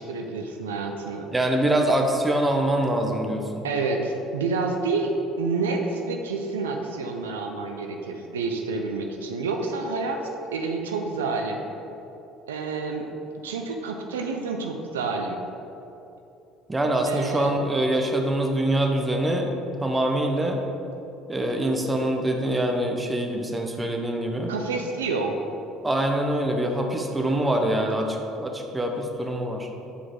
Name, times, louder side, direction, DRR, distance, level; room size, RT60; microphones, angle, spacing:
voice 1, 0.0-1.3 3.6-10.2 10.5-11.6 12.5-13.0 13.4-15.4 17.1-17.5 24.5-25.4, right 4 dB, 85° right, 3 dB, 0.5 m, -28 dB
voice 2, 1.3-3.6 16.7-19.5 19.8-20.6 21.3-24.5 25.8-29.7, right 1 dB, 15° right, 2 dB, 1.0 m, -24 dB
8.3 x 4.8 x 3.8 m, 2.8 s
hypercardioid pair, 65°, 0 cm